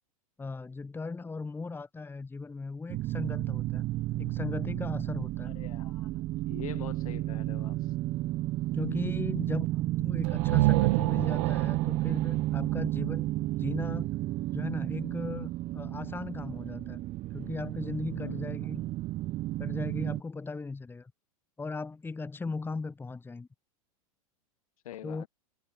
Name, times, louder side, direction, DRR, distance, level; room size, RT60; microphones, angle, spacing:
voice 1, 0.4-3.8 4.1-5.5 8.7-13.3 13.6-14.1 14.5-17.0 17.3-18.8 19.6-21.1 21.6-23.5 25.0-25.2, left 4 dB, 10° left, 1.7 m, -38 dB
sound 1, 2.9-20.2, right 16 dB, 35° right, 0.9 m, -32 dB
voice 2, 5.4-6.1 6.5-7.9 18.2-18.5 24.8-25.3, left 12 dB, 70° left, 7.3 m, -44 dB
sound 2, 10.2-14.0, right 20 dB, 60° right, 1.5 m, -29 dB
hypercardioid pair, 100°, 19 cm